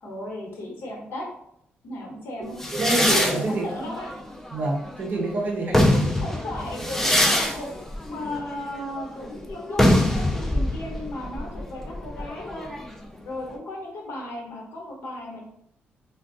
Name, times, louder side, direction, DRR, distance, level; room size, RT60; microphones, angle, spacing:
voice 1, 0.0-1.3 1.8-2.6 3.5-4.1 5.9-12.7 13.2-15.4, left 1 dB, 75° left, -1 dB, 1.0 m, -35 dB
sound 1, 2.6-5.1 5.5-13.0, left 1 dB, 10° left, 0.4 m, -24 dB
voice 2, 2.7-3.9 4.5-6.1, right 2 dB, 45° right, 0 dB, 0.7 m, -27 dB
2.4 x 2.2 x 3.6 m, 0.74 s
cardioid pair, 135°, 4 cm